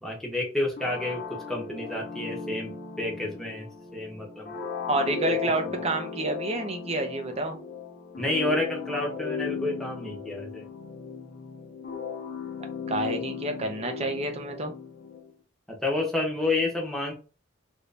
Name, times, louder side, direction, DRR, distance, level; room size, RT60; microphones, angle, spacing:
voice 1, 0.0-2.7 3.0-4.5 5.3-5.4 8.2-10.7 13.3-13.4 15.7-17.1, left 2 dB, ahead, -1 dB, 0.9 m, -30 dB
sound 1, 0.8-15.3, left 6 dB, 50° left, 0.7 m, -36 dB
voice 2, 4.9-7.6 12.9-14.7, right 2 dB, 35° right, 5 dB, 0.6 m, -29 dB
3.1 x 2.7 x 3.3 m, 0.34 s
head